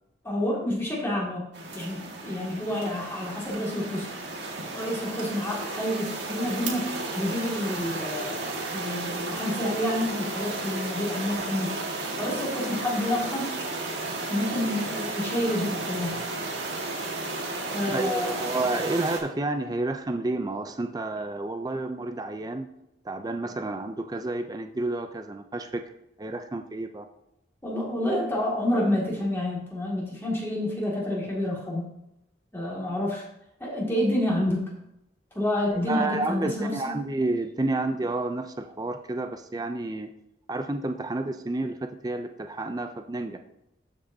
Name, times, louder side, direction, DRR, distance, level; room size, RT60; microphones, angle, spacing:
voice 1, 0.2-1.5 1.7-4.1 4.7-6.9 7.1-8.4 8.7-13.6 14.3-16.2 17.7-18.6 27.6-31.9 32.5-33.2 33.6-34.7 35.3-36.9, left 1 dB, 15° left, -5 dB, 2.1 m, -29 dB
sound 1, 1.5-19.2, right 2 dB, 70° right, 1.7 m, -33 dB
voice 2, 17.8-22.7 23.0-25.8 26.2-27.1 35.9-40.1 40.5-43.4, right 2 dB, 20° right, 7 dB, 0.4 m, -30 dB
13.0 x 5.4 x 2.7 m, 0.83 s
head